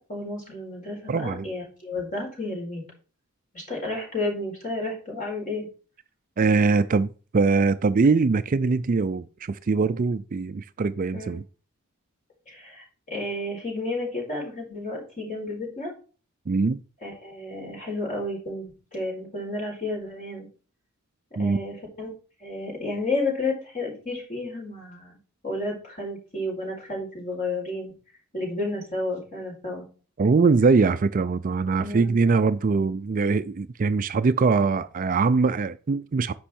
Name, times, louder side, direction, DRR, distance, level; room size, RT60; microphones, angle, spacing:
voice 1, 0.1-2.8 3.5-5.7 11.1-11.3 12.5-15.9 17.0-20.5 21.4-22.1 22.4-25.2 25.4-27.9 28.3-29.8 31.8-32.2, left 2 dB, 35° left, 4.8 m, -31 dB
voice 2, 1.1-1.5 6.4-11.4 16.5-16.8 21.4-21.6 30.2-36.3, right 4 dB, 35° right, 0.4 m, -22 dB
10.0 x 6.1 x 4.4 m
head